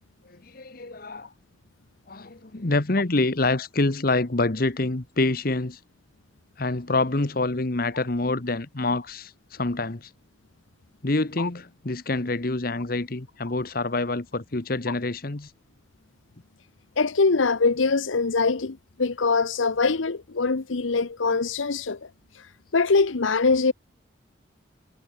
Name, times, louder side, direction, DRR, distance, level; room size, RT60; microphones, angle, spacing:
voice 1, 0.3-1.3 2.1-5.8 6.6-10.1 11.0-15.5, left 2 dB, 50° left, 1.2 m, -26 dB
voice 2, 17.0-22.1 22.7-23.7, left 4 dB, 90° left, 0.9 m, -23 dB
head